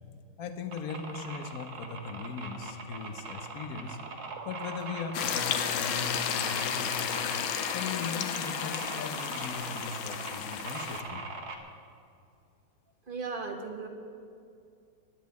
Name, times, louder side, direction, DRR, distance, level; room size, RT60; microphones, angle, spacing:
voice 1, 0.4-4.0 4.4-7.2 7.7-11.3, left 5 dB, 55° left, 8 dB, 1.1 m, -39 dB
sound 1, 0.7-11.6, right 4 dB, 55° right, 1.6 m, -42 dB
sound 2, 3.8-8.2, right 7 dB, 70° right, 1.4 m, -46 dB
sound 3, 5.1-11.0, left 8 dB, 85° left, 1.6 m, -32 dB
voice 2, 13.1-13.9, right 4 dB, 35° right, 4 dB, 1.0 m, -36 dB
10.5 x 8.4 x 9.2 m, 2.4 s
omnidirectional pair, 2.2 m